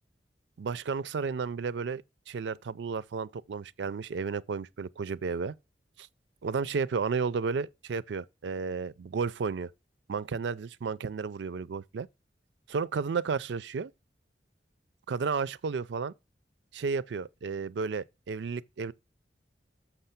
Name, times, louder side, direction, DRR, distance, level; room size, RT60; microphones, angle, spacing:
voice 1, 0.6-5.5 6.0-6.1 6.4-9.7 10.1-12.1 12.7-13.9 15.1-16.1 16.7-18.9, right 5 dB, 85° right, 0.4 m, -32 dB
6.7 x 6.0 x 5.8 m
head